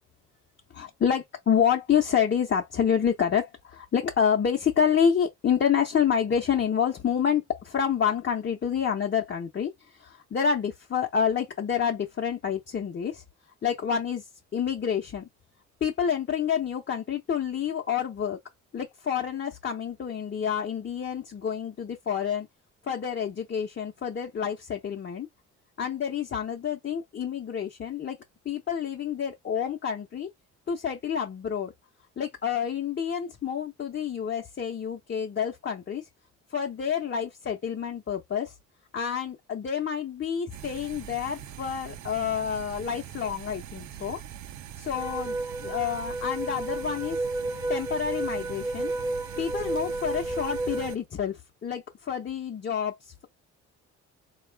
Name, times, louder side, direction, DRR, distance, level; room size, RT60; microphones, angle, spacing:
voice 1, 0.8-13.2 13.6-15.3 15.8-18.4 18.7-22.5 22.8-25.3 25.8-28.2 28.4-30.3 30.7-31.7 32.2-36.1 36.5-38.6 38.9-44.2 44.8-47.2 47.7-48.9 49.4-53.3, left 7 dB, 40° left, 0.8 m, -28 dB
sound 1, 40.5-51.0, right 10 dB, 70° right, 0.6 m, -43 dB
sound 2, 44.9-50.9, right 2 dB, 10° right, 0.3 m, -32 dB
4.2 x 2.4 x 3.4 m
cardioid pair, 90°, 30 cm